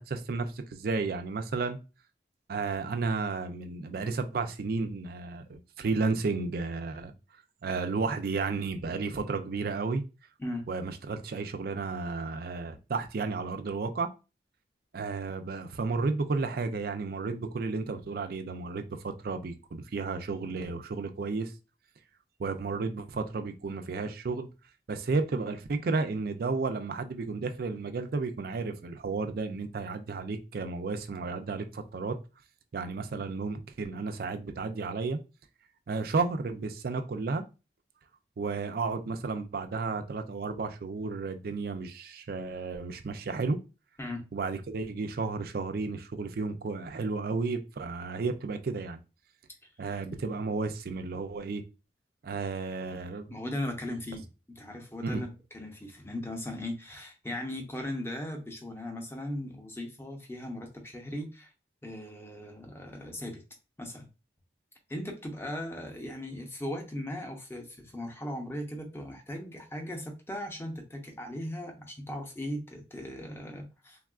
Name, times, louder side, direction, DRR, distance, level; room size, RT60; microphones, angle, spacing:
voice 1, 0.0-1.8 2.5-7.1 7.6-10.0 10.7-14.1 14.9-21.5 22.4-24.5 24.9-32.2 32.7-35.2 35.9-37.4 38.4-43.6 44.3-49.0 49.8-51.6 52.2-53.3 55.0-55.2, right 4 dB, 55° right, 0.4 m, -32 dB
voice 2, 53.3-61.5 61.8-63.4 63.8-64.1 64.9-74.0, left 1 dB, 15° left, 0.6 m, -38 dB
3.5 x 2.3 x 2.3 m
head